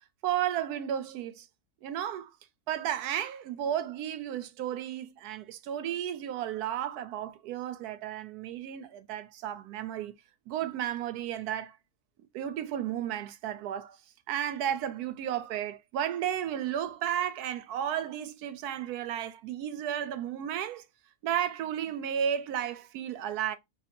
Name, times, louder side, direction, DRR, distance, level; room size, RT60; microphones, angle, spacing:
voice 1, 0.2-1.5 1.8-2.3 2.7-10.1 10.5-11.8 12.3-14.0 14.3-20.8 21.2-23.6, right 10 dB, 90° right, 1.1 m, -33 dB
2.8 x 2.7 x 4.1 m
omnidirectional pair, 1.6 m